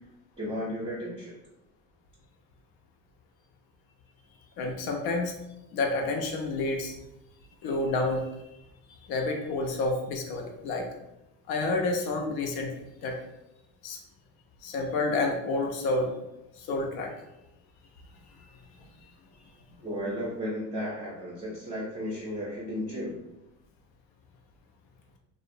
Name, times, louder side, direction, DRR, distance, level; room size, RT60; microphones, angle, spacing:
voice 1, 0.4-1.3 19.8-23.2, equal, 10° right, -7 dB, 0.6 m, -34 dB
voice 2, 4.6-5.3 5.7-6.9 7.6-8.3 9.1-10.9 11.5-12.7 13.0-13.2 13.8-14.0 14.6-16.1 16.6-17.1, left 2 dB, 60° left, 2 dB, 0.6 m, -29 dB
2.4 x 2.0 x 2.6 m, 0.91 s
supercardioid pair, 115°, 43 cm